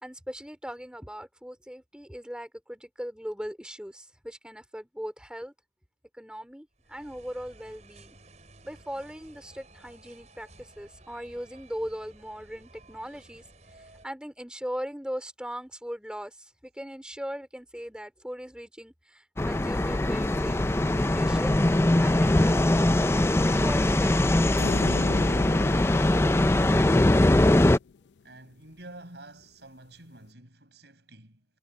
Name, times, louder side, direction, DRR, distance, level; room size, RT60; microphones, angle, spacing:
voice 1, 0.0-5.5 6.1-8.2 8.6-13.4 13.8-20.6 20.8-21.6 22.0-22.9 23.5-24.5, equal, 5° right, 3.1 m, -39 dB
sound 1, 6.8-14.1, right 2 dB, 40° right, 6.7 m, -54 dB
sound 2, 19.4-27.8, left 1 dB, 15° left, 0.4 m, -22 dB
sound 3, 24.6-28.0, left 5 dB, 80° left, 0.5 m, -37 dB
voice 2, 28.2-31.5, right 1 dB, 70° right, 5.9 m, -48 dB
head